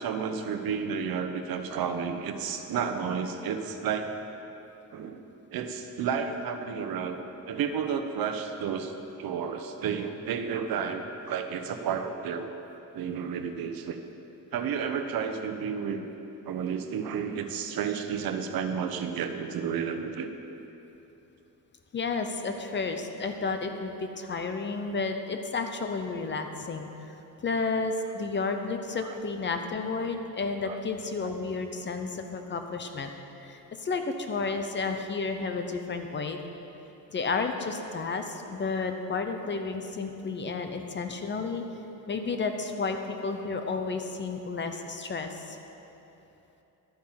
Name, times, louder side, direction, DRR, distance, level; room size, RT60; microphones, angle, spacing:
voice 1, 0.0-4.1 4.9-5.2 5.5-8.9 9.2-12.5 12.9-14.0 14.5-16.1 16.5-20.3 29.0-29.2 30.6-30.8 31.2-31.3, right 7 dB, 80° right, 7 dB, 1.0 m, -31 dB
voice 2, 21.9-27.2 27.4-33.1 33.4-36.4 37.1-41.6 42.1-45.6, left 4 dB, 30° left, 6 dB, 0.8 m, -32 dB
12.0 x 8.9 x 5.8 m, 3.0 s
cardioid pair, 155°, 35 cm